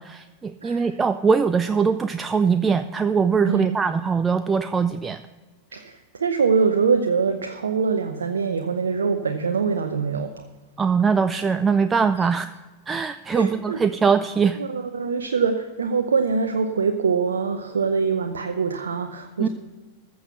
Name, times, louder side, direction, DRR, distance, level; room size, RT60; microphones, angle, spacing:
voice 1, 0.0-5.2 10.8-12.5 12.9-14.6 19.4-19.5, right 5 dB, 15° right, 11 dB, 0.4 m, -22 dB
voice 2, 3.4-3.8 5.7-10.4 12.2-12.3 13.3-13.8 14.6-19.5, right 5 dB, 70° right, 6 dB, 0.6 m, -24 dB
14.5 x 6.3 x 6.8 m, 1.3 s
figure-of-eight pair, 90°, 0 cm